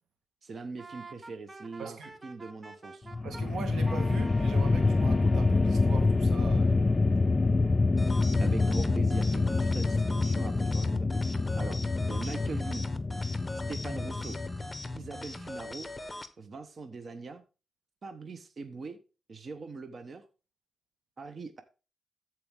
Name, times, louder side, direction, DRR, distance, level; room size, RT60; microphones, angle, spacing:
voice 1, 0.4-2.0 2.2-3.1 8.4-12.9 13.7-14.4 14.9-15.9 16.4-17.4 18.0-19.0 19.3-20.3 21.2-21.6, right 4 dB, 45° right, 1.0 m, -42 dB
Wind instrument woodwind instrument, 0.8-3.4 3.8-6.2, right 2 dB, 25° right, 0.9 m, -47 dB
voice 2, 1.8-2.1 3.2-6.8 12.2-12.4, right 6 dB, 80° right, 1.5 m, -41 dB
sound 1, 3.1-15.4, left 3 dB, 30° left, 0.4 m, -27 dB
sound 2, 8.0-16.3, left 2 dB, 15° left, 0.9 m, -41 dB
13.5 x 4.6 x 3.5 m
cardioid pair, 85°, 0 cm